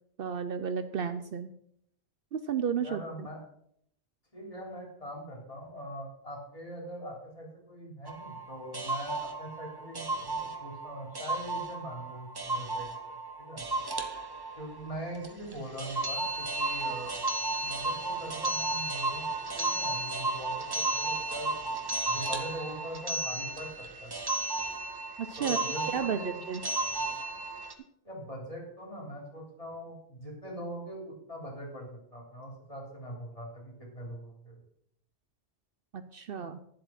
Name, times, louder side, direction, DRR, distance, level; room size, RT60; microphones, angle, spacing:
voice 1, 0.2-1.5 2.3-3.3 25.2-25.6 25.9-26.6 35.9-36.6, right 7 dB, 60° right, 10 dB, 0.8 m, -33 dB
voice 2, 2.8-3.4 4.3-13.7 14.6-17.2 17.6-19.3 19.5-21.5 22.1-24.2 25.4-26.4 28.0-34.6, right 1 dB, 30° left, -2 dB, 3.6 m, -42 dB
sound 1, 8.1-27.7, right 2 dB, 20° right, 0.9 m, -34 dB
10.5 x 7.6 x 5.9 m, 0.71 s
omnidirectional pair, 1.1 m